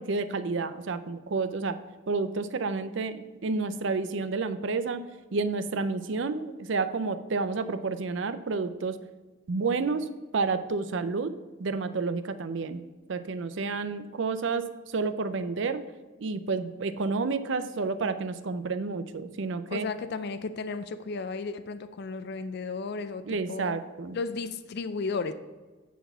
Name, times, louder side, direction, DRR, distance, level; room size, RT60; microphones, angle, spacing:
voice 1, 0.0-1.8 2.1-5.0 5.3-9.0 9.5-10.1 10.3-11.3 11.6-12.8 13.1-15.8 16.2-19.9 23.2-24.2, right 4 dB, 60° right, 11 dB, 0.5 m, -30 dB
voice 2, 19.7-23.8 24.1-25.3, left 4 dB, 55° left, 11 dB, 0.4 m, -34 dB
9.3 x 4.1 x 5.5 m, 1.3 s
head